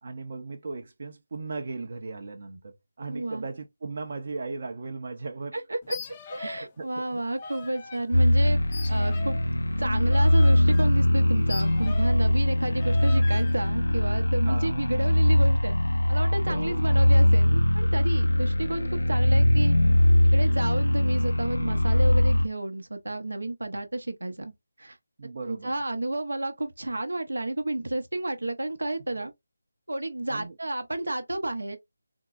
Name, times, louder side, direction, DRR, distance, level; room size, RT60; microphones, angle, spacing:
voice 1, 0.0-5.6 6.4-7.2 14.4-14.8 16.4-16.9 25.2-25.7 29.2-29.3 30.3-30.5, right 3 dB, 50° right, 0.6 m, -37 dB
voice 2, 3.1-3.5 5.5-6.0 6.3-8.6 8.9-9.4 9.8-15.8 16.1-19.8 20.2-24.5 24.8-25.0 25.4-29.3 29.9-31.8, right 2 dB, 80° right, 0.7 m, -31 dB
sound 1, 5.8-6.7 7.0-8.0 8.7-12.3 12.8-13.5, left 5 dB, 25° left, 0.5 m, -41 dB
sound 2, 8.1-22.5, left 1 dB, 85° left, 0.7 m, -22 dB
3.7 x 2.0 x 2.4 m
figure-of-eight pair, 160°, 0 cm